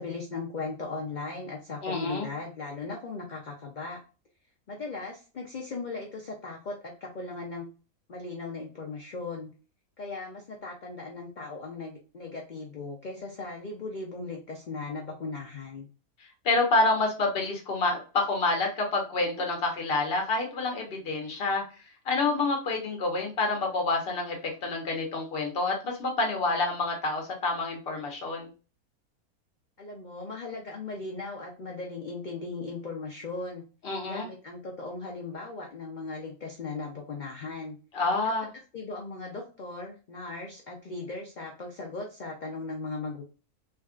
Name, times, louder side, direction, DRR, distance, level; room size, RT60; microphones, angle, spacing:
voice 1, 0.0-4.0 4.7-7.7 8.1-9.5 10.0-15.9 29.8-33.6 34.0-37.8 38.2-38.3 38.7-43.2, left 3 dB, 75° left, 1 dB, 0.4 m, -38 dB
voice 2, 1.8-2.3 16.2-21.6 22.0-28.5 33.8-34.3 37.9-38.5, left 3 dB, 45° left, 1 dB, 1.0 m, -28 dB
3.6 x 2.3 x 2.4 m, 0.35 s
omnidirectional pair, 1.5 m